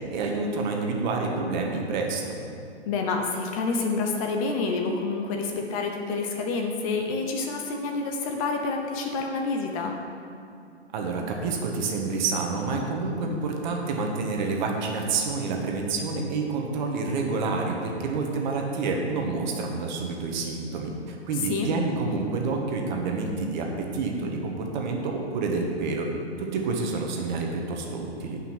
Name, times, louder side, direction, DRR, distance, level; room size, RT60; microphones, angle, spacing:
voice 1, 0.1-2.4 10.9-26.1 26.4-28.4, right 3 dB, 40° right, 1 dB, 1.5 m, -28 dB
voice 2, 2.9-9.9 21.3-21.7, left 4 dB, 30° left, 3 dB, 0.9 m, -28 dB
9.2 x 5.7 x 7.5 m, 2.5 s
figure-of-eight pair, 125°, 35 cm